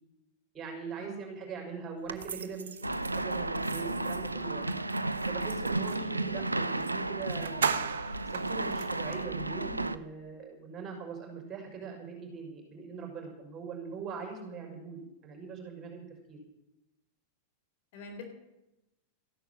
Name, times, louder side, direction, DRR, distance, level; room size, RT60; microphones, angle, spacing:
voice 1, 0.5-2.9 3.1-4.7 5.3-7.8 8.3-16.4, right 5 dB, 25° right, 1 dB, 6.0 m, -41 dB
sound 1, 2.1-6.1 6.8-6.9 7.2-9.2, right 6 dB, 65° right, 1.0 m, -37 dB
sound 2, 2.8-10.0, right 2 dB, 85° right, 0.6 m, -33 dB
voice 2, 5.8-6.1 17.9-18.2, left 2 dB, 50° left, 3 dB, 4.0 m, -44 dB
14.5 x 11.0 x 7.8 m, 0.93 s
figure-of-eight pair, 90°, 0 cm